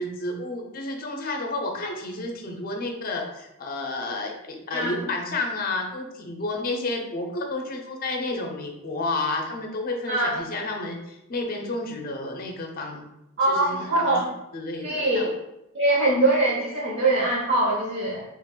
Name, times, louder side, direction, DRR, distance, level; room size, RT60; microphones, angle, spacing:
voice 1, 0.0-13.1 13.5-14.1 14.5-15.3, left 2 dB, 40° left, 2 dB, 0.5 m, -31 dB
voice 2, 10.1-10.4 13.4-14.3 14.8-15.3 15.7-18.2, right 2 dB, 55° right, -5 dB, 0.7 m, -23 dB
3.0 x 2.4 x 3.7 m, 0.87 s
head